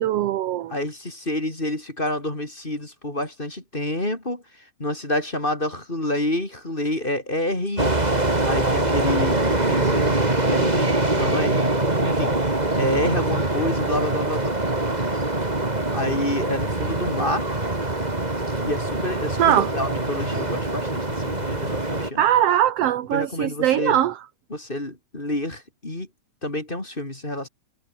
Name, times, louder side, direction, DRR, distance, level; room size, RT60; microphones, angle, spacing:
voice 1, 0.0-0.7 19.4-19.7 22.2-24.2, right 11 dB, 70° right, 1.5 m, -21 dB
voice 2, 0.7-4.4 4.8-8.0 8.4-10.2 10.5-10.9 11.1-11.7 12.0-12.4 12.8-14.5 15.9-17.5 18.6-22.3 23.1-24.0 24.5-26.1 26.4-27.5, left 1 dB, 15° left, 3.4 m, -28 dB
sound 1, 7.8-22.1, right 2 dB, 15° right, 2.8 m, -23 dB
omnidirectional pair, 3.8 m